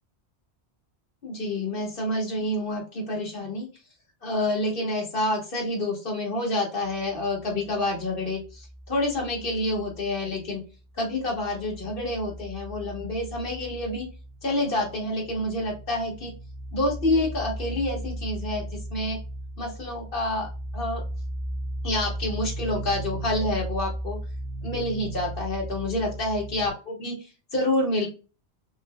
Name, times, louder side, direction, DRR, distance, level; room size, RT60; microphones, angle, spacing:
voice 1, 1.2-3.7 4.2-10.6 10.9-14.1 14.4-16.3 16.7-19.2 19.6-21.0 21.8-24.2 24.6-28.1, left 1 dB, 55° left, -1 dB, 1.5 m, -28 dB
sound 1, 6.8-10.6 10.9-26.7, right 1 dB, 30° left, 1.2 m, -37 dB
5.2 x 2.2 x 2.2 m, 0.33 s
omnidirectional pair, 1.1 m